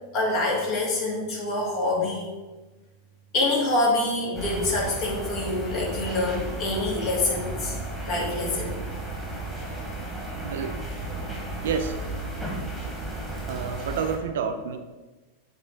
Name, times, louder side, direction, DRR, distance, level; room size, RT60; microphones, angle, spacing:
voice 1, 0.1-2.3 3.3-7.8 8.0-8.8, left 2 dB, 40° left, -2 dB, 2.6 m, -26 dB
sound 1, 4.3-14.2, right 2 dB, 10° left, 2.3 m, -34 dB
voice 2, 10.4-10.8 11.6-12.0 13.5-14.8, right 6 dB, 60° right, 7 dB, 0.7 m, -29 dB
7.7 x 4.1 x 6.2 m, 1.2 s
figure-of-eight pair, 90°, 0 cm